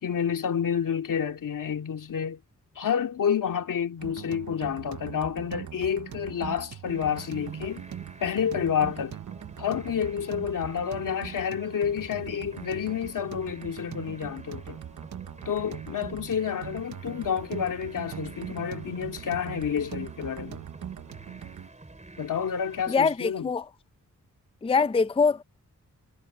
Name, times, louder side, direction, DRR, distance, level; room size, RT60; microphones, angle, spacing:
voice 1, 0.0-2.4 2.8-7.9 8.2-9.2 9.6-14.8 15.5-20.6 22.2-23.5, left 8 dB, 85° left, 2.5 m, -29 dB
sound 1, 4.0-21.7, right 9 dB, 70° right, 0.9 m, -41 dB
sound 2, 6.9-22.9, right 2 dB, 25° right, 4.5 m, -49 dB
voice 2, 22.9-23.6 24.6-25.4, left 5 dB, 20° left, 0.5 m, -23 dB
wide cardioid pair, 115°, 31 cm